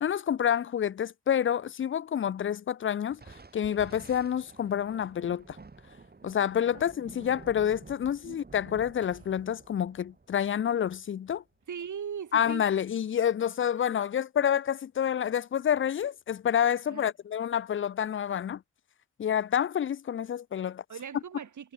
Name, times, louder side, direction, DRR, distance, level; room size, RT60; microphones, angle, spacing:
voice 1, 0.0-5.6 6.2-11.4 12.3-18.6 19.2-20.8, left 9 dB, 45° left, 0.4 m, -28 dB
Thunder, 3.1-11.9, right 3 dB, 30° right, 2.2 m, -51 dB
voice 2, 6.4-6.9 8.2-8.4 11.7-12.6 16.9-17.1 20.9-21.7, right 7 dB, 80° right, 2.5 m, -40 dB
sound 1, 9.0-11.1 11.6-12.4 12.7-13.1, right 5 dB, 55° right, 7.6 m, -66 dB
wide cardioid pair, 90°, 29 cm